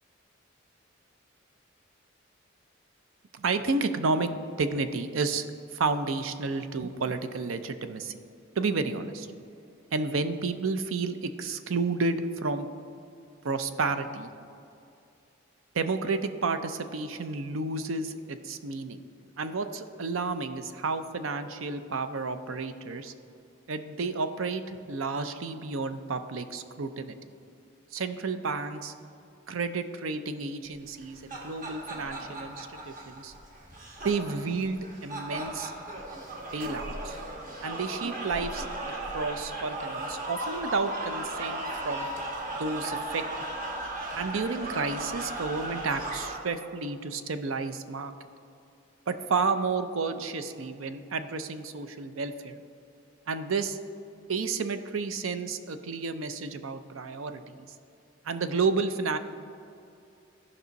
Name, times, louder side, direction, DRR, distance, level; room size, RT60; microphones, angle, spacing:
voice 1, 3.3-5.4 5.7-8.1 8.6-9.3 9.9-12.7 13.4-14.3 15.7-19.0 19.4-23.1 23.7-27.2 27.9-28.9 29.5-33.3 34.0-36.0 36.5-37.2 37.6-38.7 39.1-42.1 42.5-43.2 44.2-48.1 49.1-52.6 53.3-53.8 54.3-57.7 58.2-59.2, right 4 dB, 85° right, 10 dB, 0.6 m, -31 dB
sound 1, 30.9-46.4, right 1 dB, 40° right, 1.3 m, -36 dB
14.0 x 5.5 x 4.0 m, 2.5 s
head